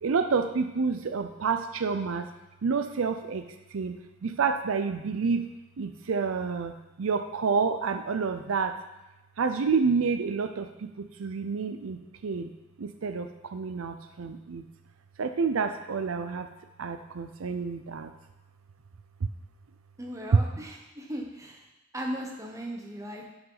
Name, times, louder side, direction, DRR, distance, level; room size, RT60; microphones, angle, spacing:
voice 1, 0.0-2.3 2.6-3.4 3.7-3.9 4.2-5.5 5.8-6.7 7.0-8.7 9.4-12.5 12.8-14.6 15.2-16.5 16.8-18.1 19.2-19.3, right 5 dB, 70° right, 7 dB, 0.5 m, -29 dB
voice 2, 20.0-21.6 21.9-23.3, equal, 15° right, 0 dB, 1.1 m, -37 dB
10.5 x 5.8 x 3.9 m, 0.99 s
head